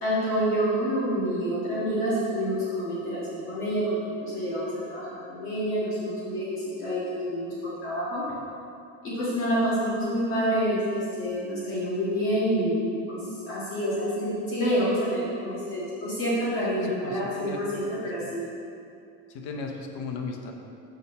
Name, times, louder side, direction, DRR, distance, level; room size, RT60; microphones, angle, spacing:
voice 1, 0.0-8.2 9.0-13.2 13.5-18.4, equal, 45° left, -9 dB, 1.7 m, -28 dB
voice 2, 16.8-17.8 18.2-18.3 19.3-20.5, left 4 dB, 90° left, 2 dB, 0.9 m, -36 dB
6.4 x 4.2 x 6.5 m, 2.5 s
cardioid pair, 175°, 29 cm